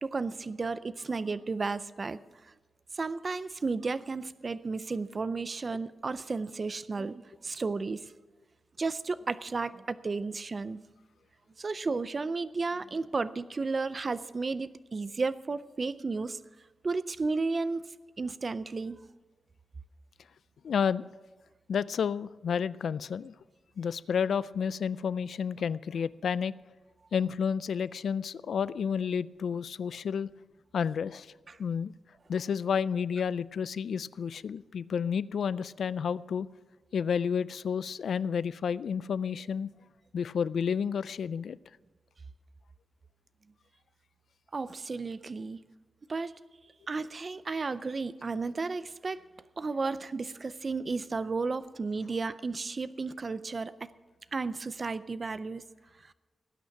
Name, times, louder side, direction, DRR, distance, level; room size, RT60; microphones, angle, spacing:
voice 1, 0.0-2.2 2.9-8.0 8.8-10.8 11.6-16.4 16.8-17.8 18.2-19.0 31.5-31.6 44.5-45.6 46.1-46.3 46.9-49.2 49.6-53.9 54.3-55.6 56.1-56.2, right 4 dB, 30° right, 0.4 m, -33 dB
voice 2, 20.6-21.0 21.7-23.3 23.8-26.5 27.1-30.3 30.7-31.3 31.6-31.9 32.3-36.5 36.9-39.7 40.1-41.6, left 7 dB, 70° left, 0.3 m, -30 dB
18.5 x 9.0 x 5.9 m
wide cardioid pair, 175°, 0 cm